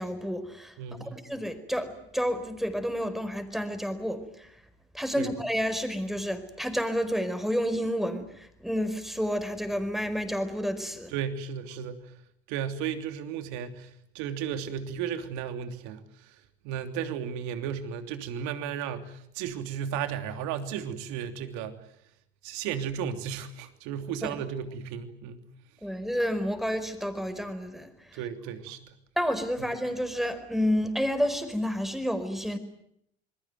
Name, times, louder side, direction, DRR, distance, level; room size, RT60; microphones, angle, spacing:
voice 1, 0.0-0.7 1.0-4.5 4.9-11.1 24.2-24.3 25.8-27.9 29.2-32.6, equal, ahead, 4.7 m, -30 dB
voice 2, 0.8-1.2 5.2-5.3 11.1-12.1 12.5-16.3 16.6-21.8 22.4-25.5 28.1-28.9, right 8 dB, 65° right, 3.2 m, -34 dB
27.5 x 21.5 x 9.4 m
hypercardioid pair, 75°, 32 cm